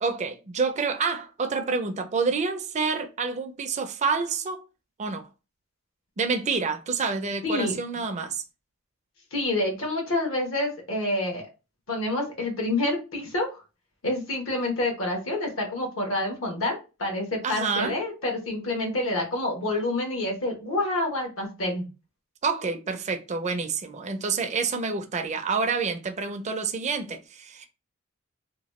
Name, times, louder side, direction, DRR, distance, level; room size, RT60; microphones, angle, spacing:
voice 1, 0.0-4.6 5.0-5.3 6.2-8.4 17.4-18.0 22.4-27.7, right 4 dB, 35° right, 0.4 m, -28 dB
voice 2, 7.4-7.8 9.3-11.4 11.9-13.6 14.0-21.9, left 2 dB, 75° left, 1.1 m, -28 dB
2.9 x 2.3 x 3.0 m
head